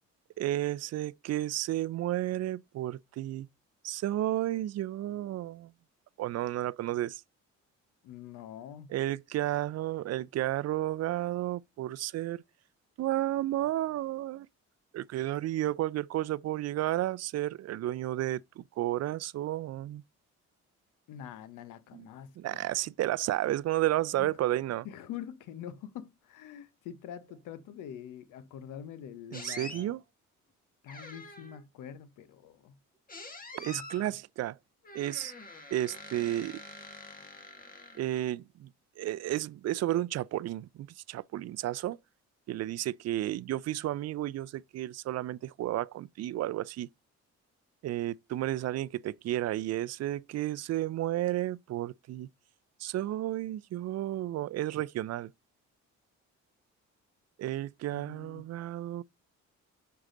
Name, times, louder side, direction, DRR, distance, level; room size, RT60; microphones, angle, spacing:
voice 1, 0.4-3.5 3.8-5.7 6.2-7.2 8.9-12.4 13.0-14.5 14.9-20.0 21.9-22.1 22.4-24.9 29.3-30.0 33.5-34.6 34.9-35.3 35.7-36.6 37.9-38.7 39.0-42.0 42.5-46.9 47.8-52.3 52.8-55.3 57.4-59.0, right 14 dB, 60° right, 0.4 m, -32 dB
voice 2, 8.0-8.9 21.1-22.7 24.2-24.3 24.8-29.9 30.8-32.8 33.7-33.8 34.1-34.2 57.9-58.4, left 9 dB, 90° left, 0.9 m, -45 dB
sound 1, 29.3-29.8 30.9-31.6 33.1-34.1 34.8-38.3, left 2 dB, 30° left, 1.9 m, -46 dB
6.5 x 4.7 x 3.7 m
cardioid pair, 90°, 30 cm